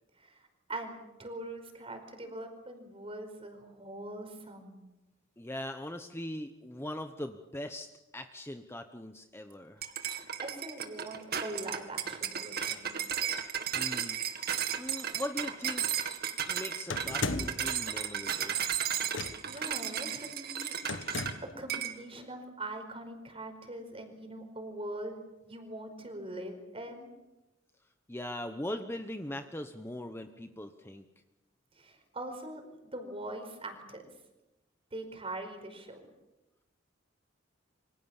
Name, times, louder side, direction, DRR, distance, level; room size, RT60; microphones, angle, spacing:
voice 1, 0.2-4.8 9.9-13.0 19.4-20.8 21.6-25.1 25.5-27.1 31.8-34.1 34.9-36.1, right 1 dB, 30° right, 6 dB, 5.0 m, -42 dB
voice 2, 5.4-7.9 8.1-9.8 13.7-14.2 14.7-15.8 16.5-18.6 28.1-31.0, left 1 dB, 10° left, 7 dB, 1.1 m, -40 dB
sound 1, 9.8-21.4 21.7-22.0, right 8 dB, 50° right, 2.2 m, -34 dB
sound 2, 16.9-17.7 19.1-19.6 20.9-21.6, left 3 dB, 70° left, 1.7 m, -36 dB
27.5 x 25.0 x 7.3 m, 0.99 s
head